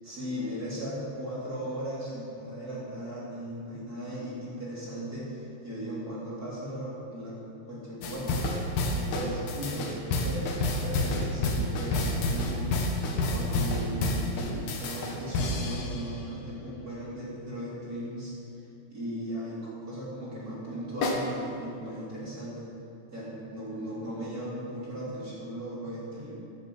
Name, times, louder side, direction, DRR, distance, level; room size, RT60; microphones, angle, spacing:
voice 1, 0.0-8.3 8.9-9.9 10.2-10.5 10.8-12.7 13.3-18.3 18.9-22.6 23.1-26.3, equal, 20° right, -8 dB, 3.0 m, -37 dB
sound 1, 8.0-16.2 21.0-21.2, left 2 dB, 65° left, 2.0 m, -29 dB
11.0 x 10.5 x 7.9 m, 2.7 s
omnidirectional pair, 5.4 m